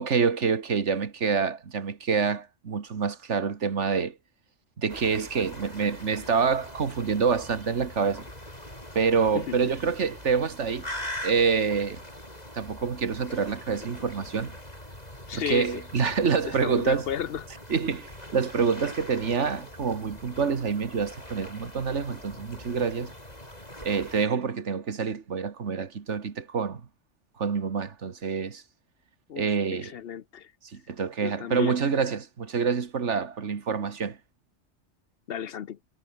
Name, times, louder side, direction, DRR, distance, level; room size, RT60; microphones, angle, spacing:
voice 1, 0.0-4.2 4.8-8.3 9.0-10.9 11.2-12.0 12.5-14.5 15.3-17.1 17.7-23.1 23.8-26.8 27.4-28.6 29.4-29.9 30.7-34.2, right 5 dB, 80° right, 1.9 m, -27 dB
sound 1, 4.9-24.3, left 1 dB, 35° left, 7.8 m, -42 dB
voice 2, 15.3-15.7 16.6-17.5 29.3-29.4 29.7-30.5 31.2-31.8 35.3-35.8, left 9 dB, 60° left, 0.9 m, -33 dB
omnidirectional pair, 1.2 m